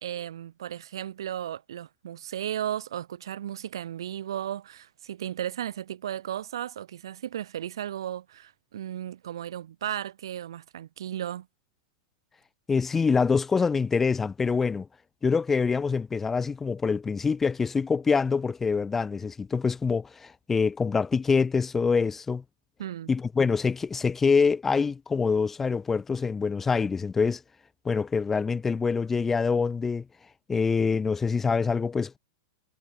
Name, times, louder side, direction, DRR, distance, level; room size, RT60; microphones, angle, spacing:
voice 1, 0.0-11.5 22.8-23.1, right 11 dB, 85° right, 3.6 m, -35 dB
voice 2, 12.7-14.9 15.2-22.4 23.1-27.4 27.9-30.0 30.5-32.2, left 5 dB, 10° left, 0.5 m, -25 dB
supercardioid pair, 160°, 2 cm